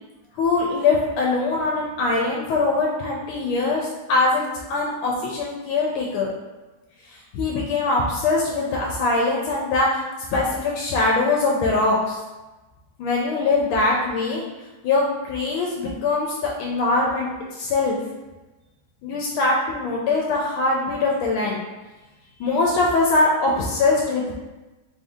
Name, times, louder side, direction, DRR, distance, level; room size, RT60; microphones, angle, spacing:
voice 1, 0.4-4.4 4.7-6.3 7.3-10.0 10.3-12.2 13.0-14.4 14.8-18.0 19.0-21.6 22.4-24.4, left 3 dB, 85° left, -2 dB, 1.4 m, -22 dB
3.8 x 2.6 x 3.5 m, 1.1 s
omnidirectional pair, 2.3 m